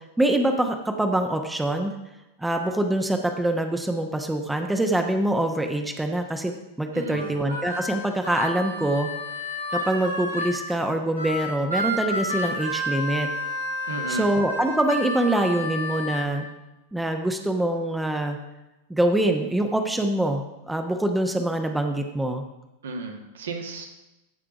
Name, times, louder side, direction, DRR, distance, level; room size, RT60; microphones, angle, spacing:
voice 1, 0.2-1.9 2.4-6.5 6.8-9.1 9.8-13.3 14.1-16.5 16.9-18.4 18.9-22.4, right 1 dB, 5° right, 4 dB, 1.0 m, -24 dB
voice 2, 6.9-7.3 13.9-14.3 22.8-23.9, right 3 dB, 65° right, 3 dB, 1.7 m, -33 dB
Harmonica, 7.1-10.6 11.1-16.3, left 1 dB, 90° left, 4.6 m, -30 dB
14.5 x 5.0 x 6.0 m, 0.98 s
figure-of-eight pair, 90°, 0 cm